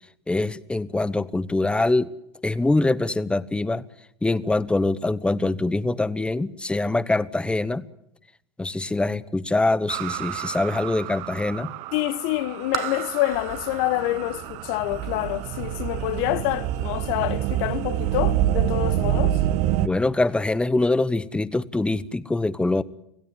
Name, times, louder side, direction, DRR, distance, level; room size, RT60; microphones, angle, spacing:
voice 1, 0.3-2.1 2.4-3.8 4.2-7.9 8.6-11.7 19.8-22.8, left 2 dB, 5° left, 1.0 m, -24 dB
sound 1, 9.9-19.9, right 12 dB, 55° right, 1.2 m, -27 dB
voice 2, 11.9-19.4, left 17 dB, 60° left, 1.3 m, -27 dB
27.0 x 16.5 x 9.8 m
hypercardioid pair, 105°, 14 cm